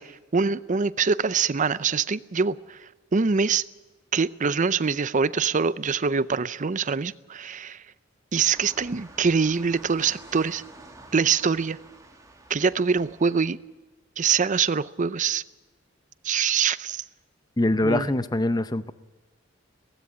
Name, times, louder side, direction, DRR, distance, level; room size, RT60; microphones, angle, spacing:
voice 1, 0.0-3.6 4.1-7.8 8.3-10.6 11.1-11.8 12.5-13.6 14.2-15.4 16.2-17.0 17.8-18.1, right 5 dB, 40° right, 0.6 m, -24 dB
sound 1, 8.5-13.5, right 2 dB, 20° right, 2.5 m, -48 dB
voice 2, 17.6-18.9, left 1 dB, 20° left, 0.7 m, -23 dB
17.5 x 15.5 x 9.8 m
head